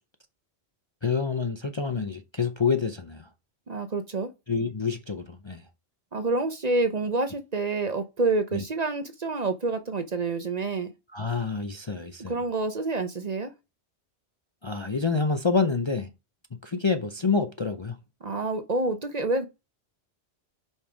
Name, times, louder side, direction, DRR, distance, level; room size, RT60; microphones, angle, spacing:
voice 1, 1.0-3.3 4.5-5.6 8.5-8.6 11.1-12.3 14.6-16.1 16.6-18.0, left 5 dB, 30° left, 0.6 m, -27 dB
voice 2, 3.7-4.3 6.1-10.9 12.3-13.5 18.2-19.4, right 3 dB, 40° right, 0.8 m, -28 dB
5.4 x 5.3 x 4.9 m
omnidirectional pair, 1.1 m